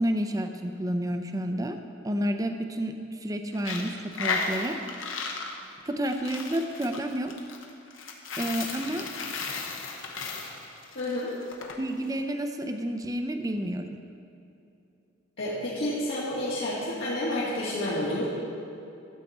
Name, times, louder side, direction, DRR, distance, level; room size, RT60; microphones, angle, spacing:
voice 1, 0.0-1.8 2.0-4.8 5.8-7.3 8.4-9.1 11.8-14.0, right 1 dB, 20° right, 6 dB, 0.5 m, -30 dB
Coin (dropping), 3.5-11.8, left 4 dB, 90° left, 1.1 m, -35 dB
voice 2, 11.0-11.3 15.4-18.3, left 1 dB, 70° left, -10 dB, 2.0 m, -29 dB
13.0 x 7.8 x 4.2 m, 2.7 s
head